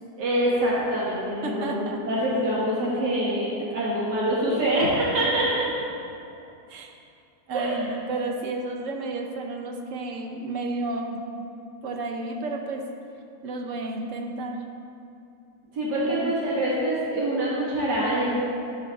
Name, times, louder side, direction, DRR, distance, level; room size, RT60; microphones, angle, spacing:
voice 1, 0.2-5.7 7.5-7.8 15.7-18.4, right 1 dB, 80° right, -6 dB, 2.1 m, -25 dB
voice 2, 1.4-2.0 2.8-3.0 6.7-6.9 7.5-11.2 11.8-12.8 13.4-14.6 16.0-16.3, right 2 dB, 55° right, 3 dB, 1.0 m, -32 dB
9.1 x 7.5 x 4.0 m, 2.6 s
omnidirectional pair, 1.8 m